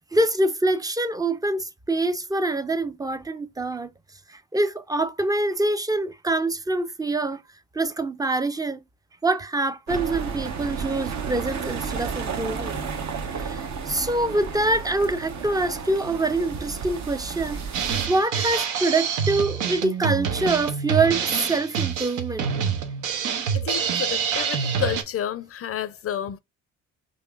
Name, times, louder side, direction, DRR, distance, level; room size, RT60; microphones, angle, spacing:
voice 1, 0.1-3.9 4.3-7.4 7.7-8.8 9.2-12.8 13.3-22.5, right 2 dB, 15° right, 0.4 m, -25 dB
sound 1, 9.9-18.1, right 6 dB, 65° right, 0.9 m, -32 dB
Drum kit, 17.7-25.0, right 7 dB, 85° right, 0.7 m, -26 dB
voice 2, 23.5-26.4, left 10 dB, 50° left, 0.4 m, -30 dB
5.2 x 2.5 x 2.3 m
cardioid pair, 90°, 30 cm